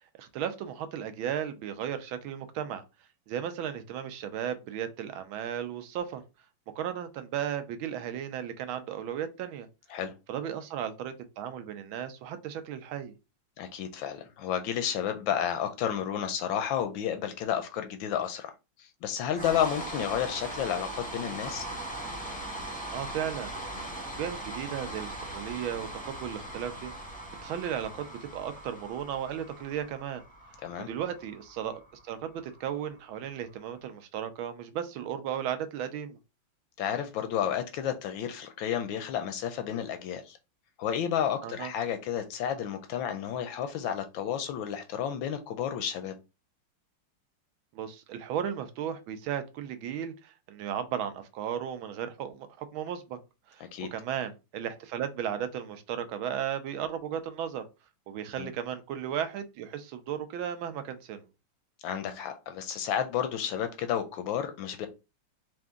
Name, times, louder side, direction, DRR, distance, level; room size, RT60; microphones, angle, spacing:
voice 1, 0.2-2.8 3.3-6.2 6.8-9.7 10.3-13.1 22.9-23.5 24.2-26.9 27.4-30.2 30.9-36.2 41.4-41.7 47.7-53.2 53.5-53.6 53.9-57.6 58.1-61.2, right 9 dB, 75° right, 9 dB, 1.4 m, -35 dB
voice 2, 13.6-18.5 18.8-21.7 30.6-30.9 36.8-40.4 40.8-46.1 53.7-53.9 58.4-58.5 61.8-64.9, left 9 dB, 75° left, 8 dB, 1.2 m, -31 dB
sound 1, 19.3-33.4, right 1 dB, 10° left, 0.5 m, -40 dB
4.6 x 2.6 x 3.6 m, 0.28 s
omnidirectional pair, 2.3 m